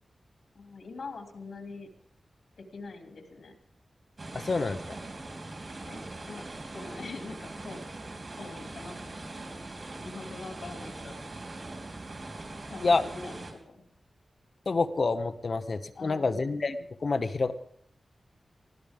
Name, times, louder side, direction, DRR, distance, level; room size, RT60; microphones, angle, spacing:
voice 1, 0.5-1.9 2.6-3.5 5.9-6.0 6.3-7.8 8.4-9.4 10.0-11.2 12.7-13.8 15.9-16.5, left 3 dB, 80° left, 3 dB, 2.9 m, -43 dB
sound 1, 4.2-13.5, right 2 dB, 45° right, 3.5 m, -41 dB
voice 2, 4.3-4.8 12.8-13.0 14.7-17.5, left 3 dB, 50° left, 9 dB, 0.9 m, -27 dB
20.5 x 16.0 x 3.6 m, 0.66 s
wide cardioid pair, 145°, 0 cm